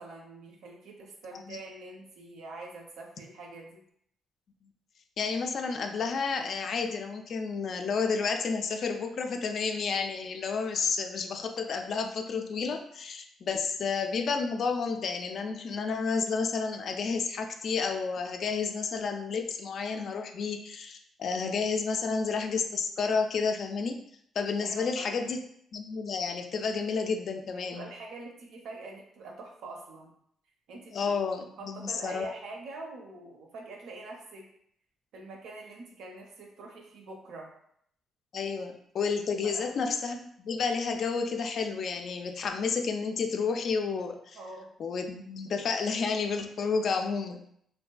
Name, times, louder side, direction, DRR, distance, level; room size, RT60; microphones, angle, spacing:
voice 1, 0.0-3.8 13.4-13.6 24.6-25.2 27.7-30.1 30.7-31.1 31.4-34.5 35.1-37.5 39.4-39.7 44.3-44.7, right 2 dB, 80° right, 0 dB, 0.6 m, -44 dB
voice 2, 5.2-24.0 24.4-25.4 25.7-27.9 30.9-32.3 38.3-44.4 44.8-47.5, left 5 dB, 60° left, 5 dB, 0.3 m, -31 dB
2.7 x 2.5 x 2.2 m, 0.69 s
cardioid pair, 90°, 0 cm